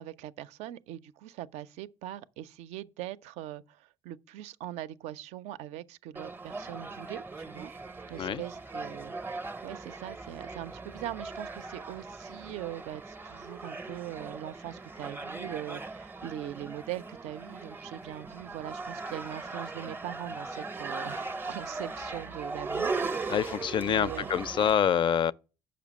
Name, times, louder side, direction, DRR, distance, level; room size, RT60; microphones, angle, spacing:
voice 1, 0.0-7.7 8.1-24.3, right 13 dB, 70° right, 0.4 m, -41 dB
sound 1, 6.1-24.7, right 3 dB, 15° right, 0.5 m, -39 dB
voice 2, 23.3-25.3, left 8 dB, 45° left, 0.4 m, -26 dB
6.7 x 5.1 x 6.2 m
hypercardioid pair, 60°, 12 cm